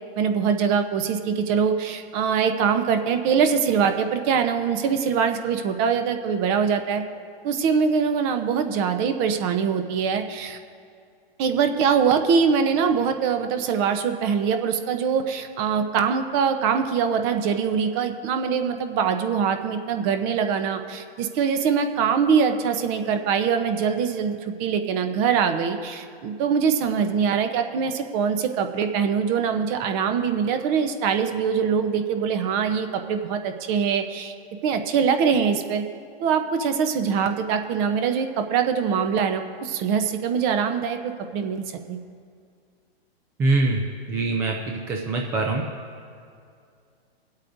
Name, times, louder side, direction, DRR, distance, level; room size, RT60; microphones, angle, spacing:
voice 1, 0.2-7.0 7.4-10.6 11.4-34.3 34.6-35.8 36.2-42.0, right 6 dB, 30° right, 7 dB, 0.7 m, -23 dB
voice 2, 43.4-43.8 44.1-45.6, right 3 dB, 10° right, 0 dB, 0.3 m, -23 dB
24.5 x 8.3 x 2.6 m, 2.3 s
hypercardioid pair, 135°, 31 cm